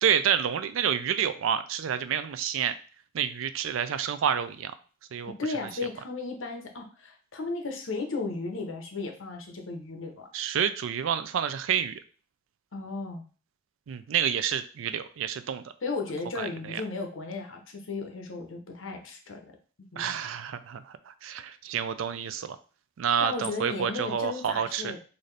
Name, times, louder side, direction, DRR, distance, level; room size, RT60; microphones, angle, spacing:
voice 1, 0.0-2.7 3.1-4.7 5.1-5.3 10.3-12.0 13.9-15.7 16.4-16.8 20.0-22.6 23.0-24.9, right 8 dB, 80° right, 11 dB, 0.4 m, -29 dB
voice 2, 5.2-10.3 12.7-13.2 15.8-19.4 19.9-20.0 23.2-25.0, left 3 dB, 75° left, 3 dB, 0.8 m, -35 dB
4.0 x 2.6 x 3.2 m, 0.39 s
head